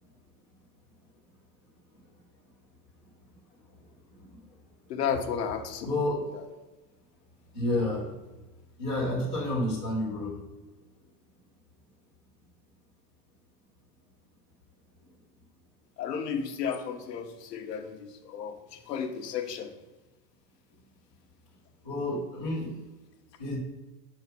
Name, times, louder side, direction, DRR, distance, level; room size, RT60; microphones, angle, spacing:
voice 1, 3.5-4.6 5.8-6.2 7.5-8.1 8.8-10.7 21.8-22.8 23.4-23.6, left 1 dB, 5° right, -17 dB, 0.4 m, -31 dB
voice 2, 4.9-5.9 16.0-18.5 18.9-19.7, left 7 dB, 85° left, 5 dB, 1.2 m, -33 dB
5.9 x 4.6 x 6.0 m, 1.1 s
supercardioid pair, 180°, 48 cm